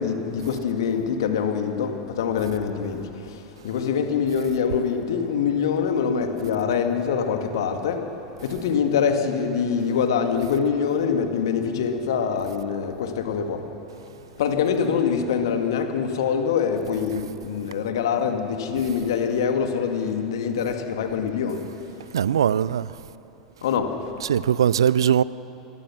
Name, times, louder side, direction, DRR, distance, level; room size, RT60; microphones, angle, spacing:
voice 1, 0.0-3.0 3.6-8.0 8.4-13.6 14.4-21.6 23.6-23.9, left 6 dB, 65° left, 2.1 m, -24 dB
voice 2, 22.1-22.9 24.2-25.2, right 9 dB, 75° right, 0.4 m, -20 dB
25.5 x 20.0 x 6.2 m
figure-of-eight pair, 85°, 3 cm